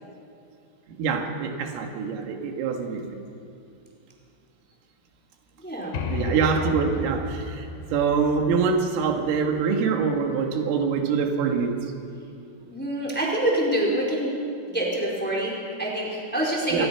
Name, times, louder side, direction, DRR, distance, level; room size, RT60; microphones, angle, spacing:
voice 1, 0.9-3.2 6.1-11.9 16.7-16.9, right 5 dB, 85° right, 3 dB, 4.4 m, -25 dB
voice 2, 5.6-6.0 12.7-14.4 14.7-16.9, right 1 dB, ahead, -3 dB, 3.6 m, -26 dB
sound 1, 5.9-9.6, left 3 dB, 65° left, 3.8 m, -33 dB
26.0 x 21.0 x 5.9 m, 2.5 s
omnidirectional pair, 5.7 m